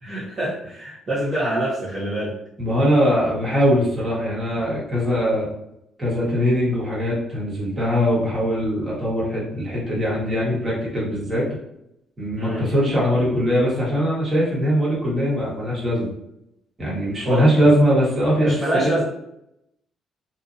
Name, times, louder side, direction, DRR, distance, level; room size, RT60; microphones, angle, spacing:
voice 1, 0.0-2.4 12.4-12.7 17.2-17.5 18.4-19.0, right 1 dB, 40° right, -10 dB, 1.0 m, -25 dB
voice 2, 2.6-5.5 6.0-11.4 12.2-16.1 16.8-18.6, equal, 20° right, -7 dB, 1.4 m, -21 dB
2.7 x 2.4 x 2.5 m, 0.79 s
cardioid pair, 95°, 0 cm